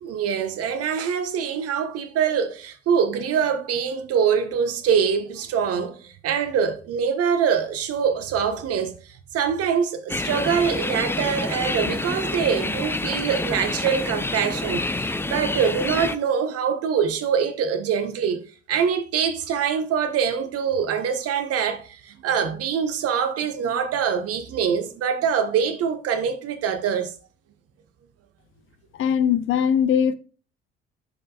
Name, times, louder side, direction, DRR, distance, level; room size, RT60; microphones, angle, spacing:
voice 1, 0.0-8.9 9.3-18.4 18.7-27.1, right 7 dB, 50° right, 1.3 m, -24 dB
sound 1, 10.1-16.2, left 2 dB, 10° left, 0.5 m, -28 dB
voice 2, 28.9-30.1, left 8 dB, 45° left, 0.7 m, -20 dB
11.0 x 5.4 x 2.3 m
figure-of-eight pair, 50°, 30 cm